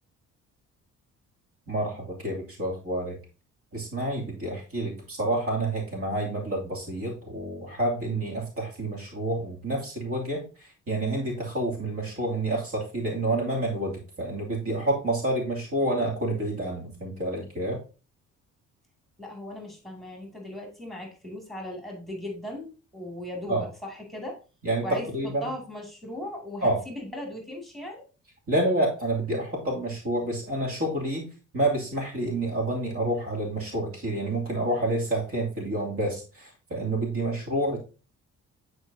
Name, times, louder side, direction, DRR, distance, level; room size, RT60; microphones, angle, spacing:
voice 1, 1.7-3.2 3.7-10.4 10.9-17.8 23.5-23.6 24.6-25.5 26.6-26.8 28.5-31.3 31.5-37.8, right 1 dB, 50° right, -2 dB, 2.7 m, -28 dB
voice 2, 19.2-24.4 24.8-28.0, left 1 dB, ahead, 0 dB, 2.3 m, -38 dB
9.6 x 4.8 x 2.7 m, 0.34 s
cardioid pair, 90°, 30 cm